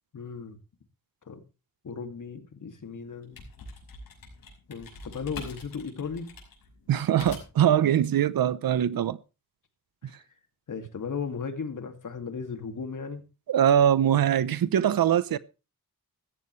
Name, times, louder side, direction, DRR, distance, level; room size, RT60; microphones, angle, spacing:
voice 1, 0.1-0.6 1.3-1.4 1.8-3.4 4.7-6.3 10.0-10.2 10.7-13.2, left 5 dB, 60° left, 2.4 m, -36 dB
sound 1, 3.1-7.7, left 3 dB, 85° left, 5.9 m, -44 dB
voice 2, 6.9-9.2 13.5-15.4, right 10 dB, 75° right, 0.8 m, -22 dB
15.5 x 14.0 x 3.2 m
cardioid pair, 80°, 35 cm